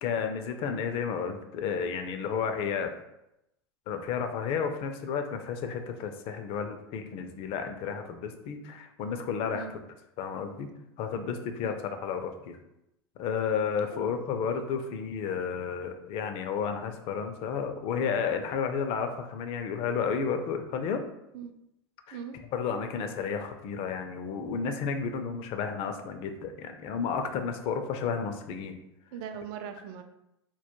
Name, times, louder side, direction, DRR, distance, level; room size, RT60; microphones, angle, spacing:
voice 1, 0.0-2.9 3.9-9.8 10.2-10.7 11.0-12.6 13.2-21.0 22.1-22.2 22.5-28.8, left 6 dB, 50° left, 6 dB, 0.4 m, -32 dB
voice 2, 29.1-30.0, right 8 dB, 65° right, 7 dB, 0.4 m, -40 dB
2.2 x 2.1 x 2.9 m, 0.85 s
hypercardioid pair, 95°, 13 cm